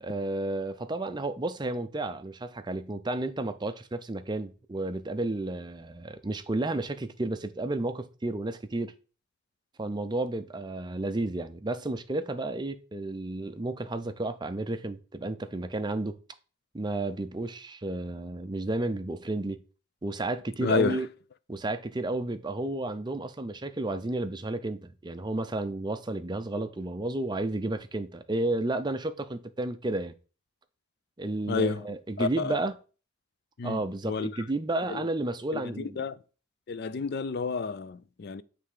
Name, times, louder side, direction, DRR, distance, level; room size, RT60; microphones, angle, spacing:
voice 1, 0.0-8.9 9.8-16.2 16.7-19.6 20.0-21.1 21.5-30.1 31.2-32.7 33.6-36.0, right 2 dB, 20° right, 0.5 m, -32 dB
voice 2, 20.6-21.0 31.5-31.9 32.2-32.6 33.6-34.4 34.9-35.1 35.5-36.1 36.7-38.4, left 4 dB, 50° left, 0.4 m, -30 dB
7.5 x 3.4 x 4.9 m
head